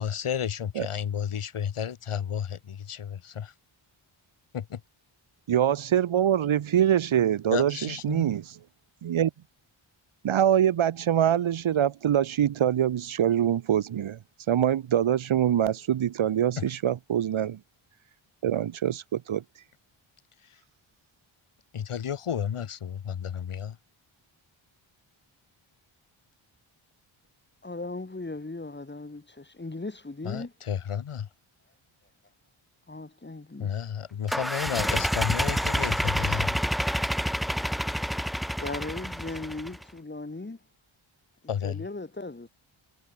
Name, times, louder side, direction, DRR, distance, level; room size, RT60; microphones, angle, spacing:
voice 1, 0.0-3.5 4.5-4.8 7.5-8.3 16.6-16.7 21.7-23.8 30.2-31.3 33.6-36.6 41.5-41.8, left 8 dB, 80° left, 3.4 m, -32 dB
voice 2, 5.5-8.6 9.0-9.3 10.2-14.2 14.5-17.6 18.4-19.4, right 10 dB, 70° right, 1.1 m, -24 dB
voice 3, 27.6-30.5 32.9-33.8 38.6-40.6 41.6-42.5, left 2 dB, 20° left, 6.0 m, -37 dB
sound 1, 34.3-39.8, equal, ahead, 1.9 m, -28 dB
wide cardioid pair, 115°, 50 cm